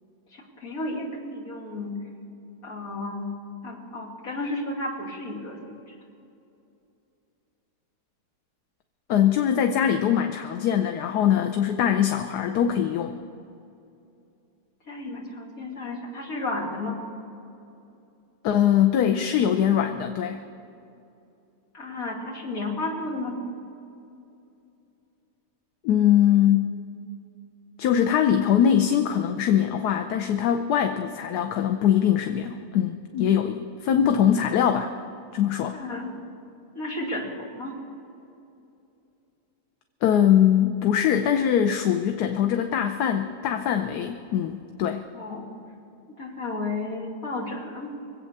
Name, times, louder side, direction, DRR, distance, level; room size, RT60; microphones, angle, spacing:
voice 1, 0.3-2.0 2.6-3.4 3.6-6.0 14.9-17.0 21.7-23.3 35.7-36.2 36.7-37.7 45.1-45.5 46.1-47.9, left 2 dB, 60° left, -3 dB, 3.1 m, -33 dB
voice 2, 9.1-13.1 18.4-20.4 25.8-26.8 27.8-34.9 35.3-35.8 40.0-45.0, left 9 dB, 80° left, 6 dB, 1.3 m, -22 dB
23.5 x 8.6 x 6.7 m, 2.7 s
omnidirectional pair, 1.7 m